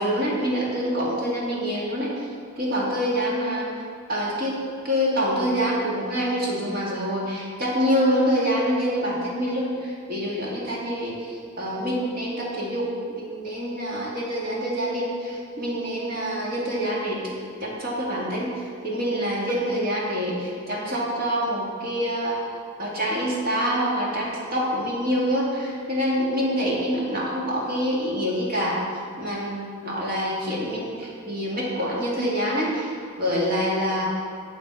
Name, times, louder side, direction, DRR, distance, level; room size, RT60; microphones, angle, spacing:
voice 1, 0.0-2.3 2.6-3.7 4.1-17.2 17.6-22.4 22.8-28.8 29.2-32.9 33.2-34.1, equal, 45° right, -5 dB, 2.2 m, -26 dB
8.1 x 7.5 x 4.7 m, 2.3 s
head